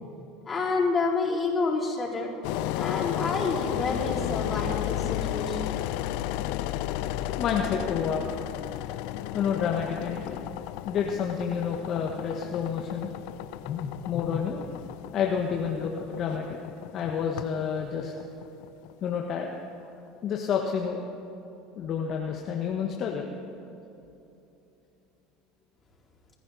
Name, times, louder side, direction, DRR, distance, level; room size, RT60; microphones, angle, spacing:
voice 1, 0.4-2.3 2.8-5.6, left 3 dB, 30° left, -4 dB, 4.3 m, -28 dB
Engine, 2.4-19.3, left 13 dB, 70° left, 0.5 m, -33 dB
voice 2, 7.4-8.2 9.3-10.4 10.8-13.1 13.6-14.6 15.1-16.6 16.9-18.1 19.0-19.5 20.2-21.0 21.8-23.3, left 7 dB, 50° left, 1 dB, 1.3 m, -29 dB
27.0 x 10.0 x 4.2 m, 2.9 s
hypercardioid pair, 85°, 0 cm